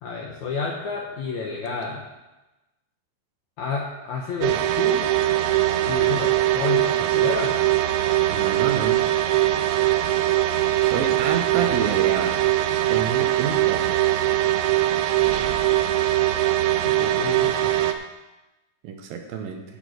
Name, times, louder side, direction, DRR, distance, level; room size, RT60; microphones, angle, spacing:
voice 1, 0.0-2.0 3.6-5.2 5.9-7.6 17.0-17.8, left 4 dB, 75° left, 0 dB, 1.7 m, -30 dB
sound 1, 4.4-17.9, right 14 dB, 90° right, 2.7 m, -21 dB
voice 2, 8.3-9.0 10.8-12.4 12.9-14.0 18.8-19.6, right 7 dB, 75° right, 4 dB, 2.5 m, -28 dB
10.5 x 5.9 x 7.9 m, 1.1 s
omnidirectional pair, 4.6 m